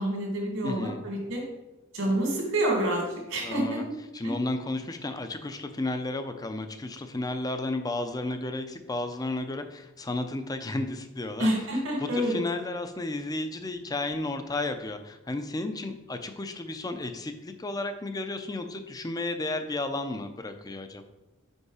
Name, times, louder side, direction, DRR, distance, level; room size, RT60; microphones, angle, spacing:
voice 1, 0.0-1.4 1.9-3.8 4.2-4.3 11.4-12.4, right 1 dB, 75° right, -1 dB, 2.2 m, -28 dB
voice 2, 0.6-1.0 3.4-3.8 4.1-11.5 12.0-21.0, left 2 dB, 20° left, 8 dB, 0.5 m, -33 dB
5.3 x 4.7 x 4.8 m, 1.0 s
head